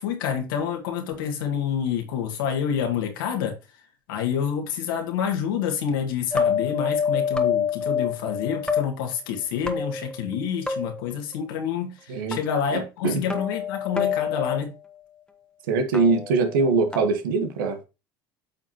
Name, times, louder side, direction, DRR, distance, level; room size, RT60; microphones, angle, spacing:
voice 1, 0.0-3.5 4.1-14.7, left 8 dB, 80° left, 1.9 m, -28 dB
sound 1, 6.3-8.8 9.7-10.4 10.7-11.1 12.3-12.4 13.3-14.6 15.9-17.0, left 6 dB, 5° left, 1.2 m, -26 dB
voice 2, 12.7-13.2 15.7-17.9, right 4 dB, 85° right, 1.3 m, -23 dB
8.5 x 5.3 x 2.9 m
hypercardioid pair, 80°, 11 cm